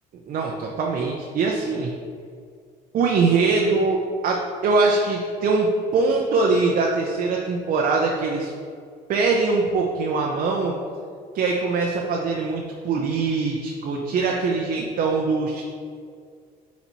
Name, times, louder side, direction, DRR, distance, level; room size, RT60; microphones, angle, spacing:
voice 1, 0.3-1.9 2.9-8.5 9.1-10.8 11.3-15.6, right 4 dB, 55° right, 0 dB, 0.6 m, -22 dB
8.0 x 4.1 x 3.0 m, 2.1 s
cardioid pair, 110°, 17 cm